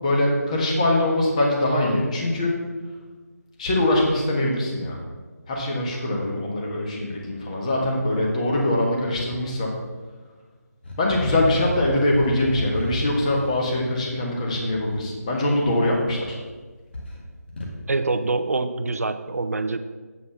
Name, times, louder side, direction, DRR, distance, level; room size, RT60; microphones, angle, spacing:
voice 1, 0.0-2.5 3.6-5.0 5.5-9.7 11.0-16.4, left 1 dB, 25° left, -2 dB, 1.5 m, -23 dB
sound 1, 10.8-15.0 15.8-16.5 16.8-17.8, left 1 dB, 40° left, 1.7 m, -33 dB
voice 2, 17.9-19.8, right 3 dB, 60° right, 10 dB, 0.6 m, -25 dB
8.3 x 5.0 x 5.9 m, 1.4 s
figure-of-eight pair, 160°, 9 cm